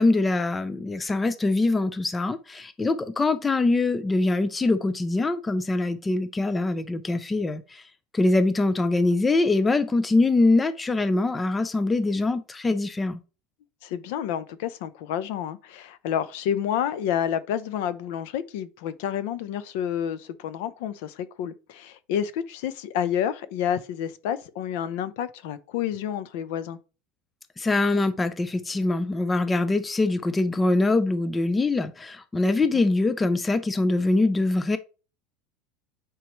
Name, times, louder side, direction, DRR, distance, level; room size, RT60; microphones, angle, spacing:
voice 1, 0.0-7.8 8.1-13.2 27.6-34.8, left 2 dB, 10° left, 0.5 m, -23 dB
voice 2, 13.8-26.8 32.7-32.8, left 9 dB, 65° left, 0.8 m, -29 dB
9.3 x 4.7 x 3.1 m
supercardioid pair, 155°, 0 cm